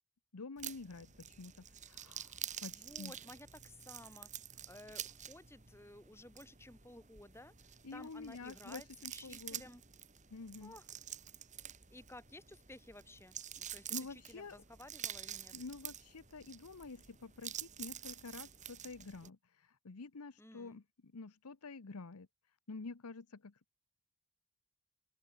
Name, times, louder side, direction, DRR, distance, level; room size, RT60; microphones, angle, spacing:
voice 1, 0.3-3.1 7.8-9.6 10.3-10.8 13.9-14.6 15.5-22.3 22.7-23.8, left 4 dB, 90° left, 0.9 m, -49 dB
sound 1, 0.6-19.3, right 10 dB, 35° right, 4.6 m, -48 dB
voice 2, 2.4-4.3 4.7-7.5 7.9-8.9 9.1-9.8 10.6-10.8 11.9-15.5 20.4-20.8, left 1 dB, 10° left, 4.5 m, -55 dB
open air
head